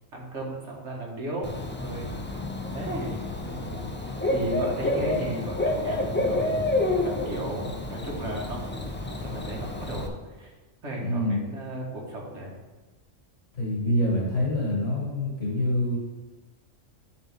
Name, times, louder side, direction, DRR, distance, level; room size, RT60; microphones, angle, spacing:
voice 1, 0.1-2.2 2.7-6.8 7.0-8.9 9.2-10.5 10.8-12.5, right 1 dB, 65° right, -2 dB, 1.9 m, -35 dB
Bird / Cricket, 1.4-10.1, left 2 dB, 15° left, 0.4 m, -29 dB
voice 2, 11.0-11.4 13.5-16.0, left 1 dB, 75° left, -4 dB, 2.6 m, -26 dB
11.5 x 4.2 x 3.6 m, 1.2 s
omnidirectional pair, 1.3 m